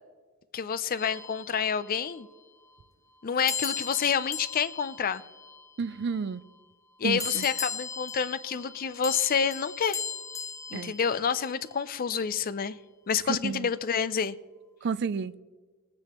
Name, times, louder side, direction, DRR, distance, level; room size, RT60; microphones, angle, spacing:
voice 1, 0.5-2.3 3.2-5.2 7.0-10.0 10.7-12.8 13.1-14.4, left 7 dB, 45° left, 0.5 m, -28 dB
sound 1, 1.0-2.2 3.5-6.2 7.2-11.7, left 6 dB, 15° left, 1.0 m, -38 dB
voice 2, 5.8-6.4 7.0-7.4 10.7-10.9 13.4-13.7 14.8-15.3, right 5 dB, 50° right, 0.4 m, -31 dB
19.0 x 9.7 x 3.0 m
head